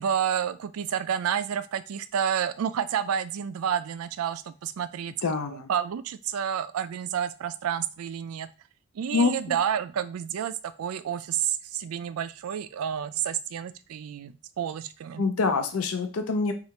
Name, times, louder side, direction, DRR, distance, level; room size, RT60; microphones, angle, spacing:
voice 1, 0.0-5.1 5.4-8.5 9.0-15.2, right 8 dB, 80° right, 13 dB, 0.3 m, -30 dB
voice 2, 5.2-5.7 9.1-9.6 15.2-16.5, left 4 dB, 75° left, 6 dB, 0.5 m, -26 dB
4.3 x 2.4 x 2.9 m, 0.34 s
head